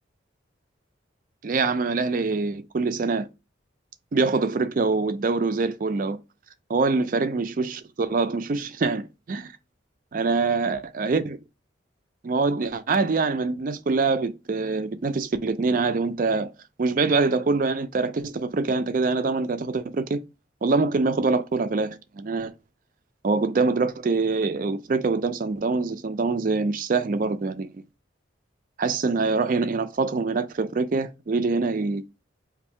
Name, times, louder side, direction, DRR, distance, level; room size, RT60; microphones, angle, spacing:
voice 1, 1.4-3.3 4.1-6.2 6.7-9.5 10.1-11.4 12.2-16.5 16.8-20.2 20.6-22.5 23.2-27.7 28.8-32.0, right 3 dB, 45° right, 0.4 m, -24 dB
2.6 x 2.6 x 4.2 m
head